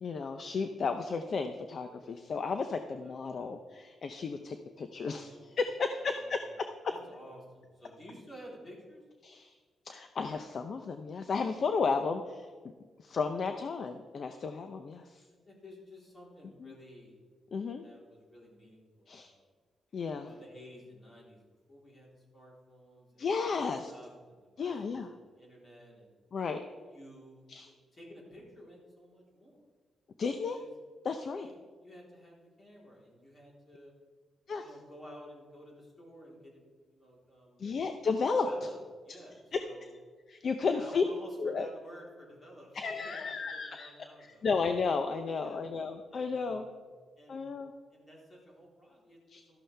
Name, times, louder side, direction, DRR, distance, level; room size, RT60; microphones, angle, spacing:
voice 1, 0.0-6.7 9.2-9.5 9.9-12.5 13.0-15.2 16.6-16.7 17.5-17.8 19.1-19.3 19.9-20.3 23.2-23.9 24.6-25.1 26.3-26.6 27.5-27.7 30.2-30.6 31.0-31.5 34.5-34.7 37.6-38.5 39.5-39.6 40.3-41.0 41.4-41.7 42.7-43.9 44.2-46.6 47.3-47.7 49.3-49.4, left 4 dB, 50° left, 7 dB, 0.6 m, -33 dB
voice 2, 3.0-3.5 5.0-5.6 6.0-6.4 6.9-9.0 15.5-17.2 17.8-19.5 20.2-21.4 21.7-25.0 25.4-26.1 26.9-29.6 30.5-30.7 31.4-33.9 34.6-37.7 38.4-39.8 40.6-44.4 45.3-45.7 46.1-46.8 47.2-47.4 47.9-49.2 49.5-49.6, equal, 30° left, -3 dB, 3.6 m, -53 dB
13.0 x 12.0 x 3.4 m, 1.5 s
wide cardioid pair, 145°, 0 cm